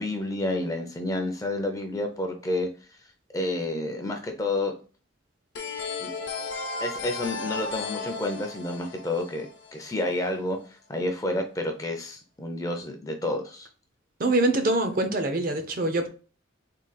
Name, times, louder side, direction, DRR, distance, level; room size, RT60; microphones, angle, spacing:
voice 1, 0.0-2.7 3.3-4.7 6.0-6.1 6.8-13.7, left 1 dB, 15° left, 0.5 m, -30 dB
sound 1, 5.6-10.2, left 4 dB, 60° left, 0.7 m, -35 dB
voice 2, 14.2-16.1, right 2 dB, 45° right, 0.5 m, -24 dB
3.7 x 2.3 x 4.0 m
head